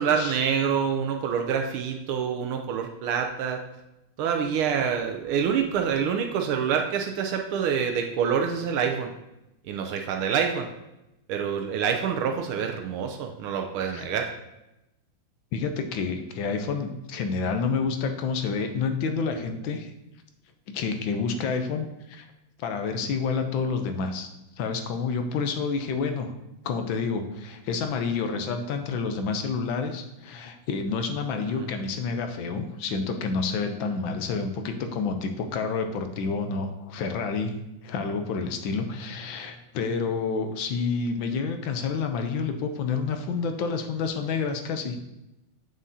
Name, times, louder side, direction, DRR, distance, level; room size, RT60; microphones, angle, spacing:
voice 1, 0.0-3.6 4.2-9.1 9.6-10.7 11.3-14.3 31.4-31.7, right 7 dB, 80° right, 4 dB, 1.5 m, -26 dB
voice 2, 15.5-19.9 20.7-22.3 22.6-26.3 26.6-37.5 37.8-45.0, left 5 dB, 75° left, 6 dB, 1.3 m, -29 dB
7.1 x 6.3 x 2.7 m, 0.92 s
omnidirectional pair, 2.3 m